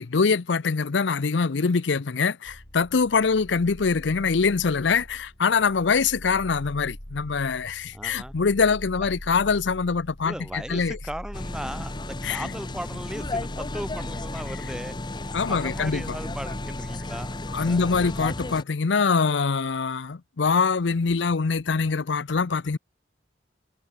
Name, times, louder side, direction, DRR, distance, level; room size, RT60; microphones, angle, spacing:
voice 1, 0.0-11.0 12.2-12.5 15.3-16.2 17.5-22.8, left 5 dB, 75° left, 0.6 m, -24 dB
sound 1, 2.4-18.3, equal, 45° left, 4.7 m, -42 dB
voice 2, 7.9-8.3 9.0-9.1 10.2-17.4 17.7-17.9, equal, 5° right, 0.9 m, -37 dB
sound 2, 11.3-18.6, left 2 dB, 25° left, 0.9 m, -34 dB
head